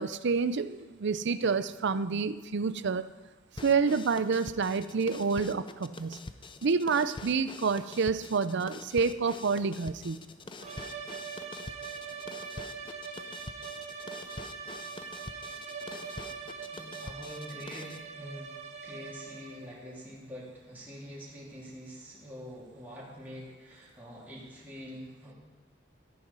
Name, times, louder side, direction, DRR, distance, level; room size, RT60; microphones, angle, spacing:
voice 1, 0.0-3.0 3.6-6.2 6.6-10.2, right 5 dB, 60° right, 14 dB, 0.5 m, -28 dB
sound 1, 3.6-18.0, left 3 dB, 25° left, 0.5 m, -46 dB
sound 2, 10.6-19.8, right 6 dB, 35° right, 1.4 m, -42 dB
voice 2, 16.6-25.3, equal, 10° right, -7 dB, 3.3 m, -45 dB
14.0 x 9.9 x 5.5 m, 1.2 s
head